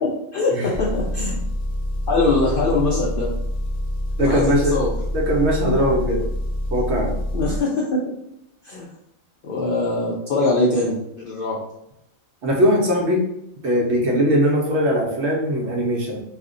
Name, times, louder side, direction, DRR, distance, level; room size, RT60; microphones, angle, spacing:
voice 1, 0.0-1.4 2.1-3.3 4.2-4.9 7.3-8.0 8.6-8.9 9.4-11.6, left 2 dB, 65° left, -4 dB, 0.5 m, -22 dB
Engine, 0.7-7.6, left 1 dB, 50° left, 0.8 m, -26 dB
voice 2, 4.2-4.8 5.1-6.2 6.7-7.1 12.4-13.2 13.6-16.2, equal, 65° right, -1 dB, 0.8 m, -20 dB
2.4 x 2.1 x 3.6 m, 0.80 s
omnidirectional pair, 1.4 m